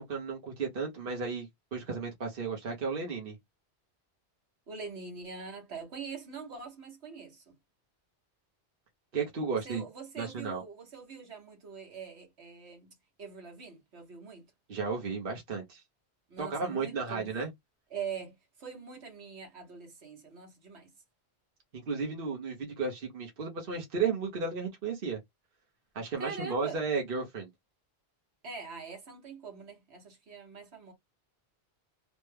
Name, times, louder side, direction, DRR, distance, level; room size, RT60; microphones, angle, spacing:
voice 1, 0.0-3.4 9.1-9.8 10.2-10.6 14.7-15.8 16.4-17.5 21.7-25.2 25.9-27.5, right 5 dB, 55° right, 1.1 m, -34 dB
voice 2, 4.7-7.5 9.5-14.5 16.3-17.3 17.9-20.9 26.2-26.8 28.4-30.9, right 5 dB, 75° right, 1.5 m, -43 dB
3.3 x 2.2 x 3.2 m
omnidirectional pair, 1.1 m